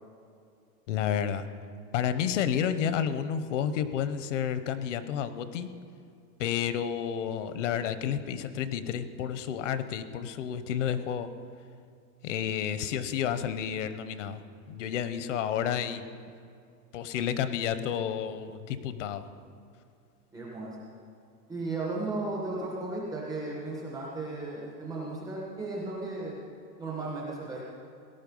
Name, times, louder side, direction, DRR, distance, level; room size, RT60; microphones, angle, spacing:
voice 1, 0.9-1.5 1.9-5.7 6.4-11.3 12.2-14.4 14.7-16.1 16.9-19.3, left 9 dB, 50° left, 12 dB, 0.9 m, -30 dB
voice 2, 20.3-20.9 21.5-26.4 26.8-27.6, right 2 dB, ahead, -5 dB, 0.3 m, -35 dB
18.0 x 11.0 x 5.4 m, 2.4 s
supercardioid pair, 170°, 46 cm